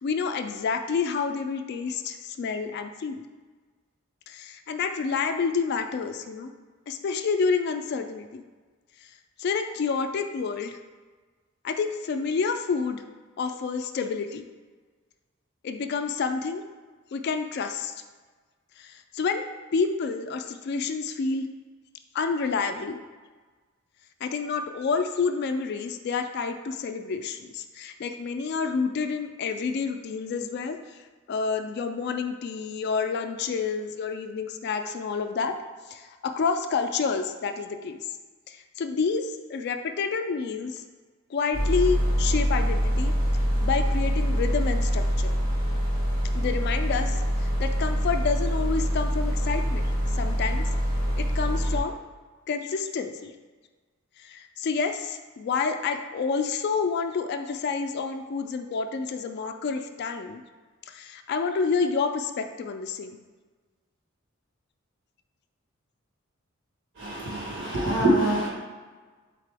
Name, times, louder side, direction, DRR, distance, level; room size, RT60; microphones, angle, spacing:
voice 1, 0.0-3.2 4.3-6.5 6.9-8.4 9.4-10.7 11.6-13.0 13.4-14.4 15.6-16.6 17.1-17.9 19.1-19.4 19.7-21.4 22.1-23.0 24.2-30.8 31.3-35.5 35.9-38.0 38.8-40.8 41.3-43.1 43.6-45.3 46.3-47.2 47.6-49.9 50.1-50.6 51.2-52.0 52.5-53.3 54.2-60.4 60.9-63.2, left 5 dB, 50° left, 6 dB, 0.3 m, -28 dB
sound 1, 41.5-51.8, equal, 75° right, 1.1 m, -25 dB
voice 2, 67.0-68.5, right 1 dB, 60° right, -3 dB, 1.3 m, -24 dB
4.0 x 3.7 x 3.4 m, 1.4 s
head